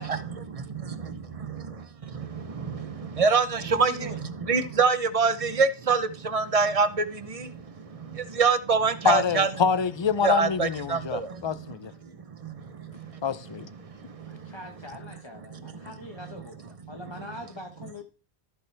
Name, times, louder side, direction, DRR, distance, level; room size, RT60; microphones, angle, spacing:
voice 1, 0.0-9.5 10.2-11.8 12.0-13.2 13.5-14.5 15.5-15.9, right 5 dB, 35° right, 0.8 m, -27 dB
voice 2, 3.5-4.2 14.3-16.6 16.9-18.0, left 1 dB, 25° left, 1.2 m, -42 dB
voice 3, 9.0-11.9 13.2-13.7, left 6 dB, 50° left, 0.3 m, -26 dB
14.5 x 8.3 x 3.4 m
omnidirectional pair, 1.1 m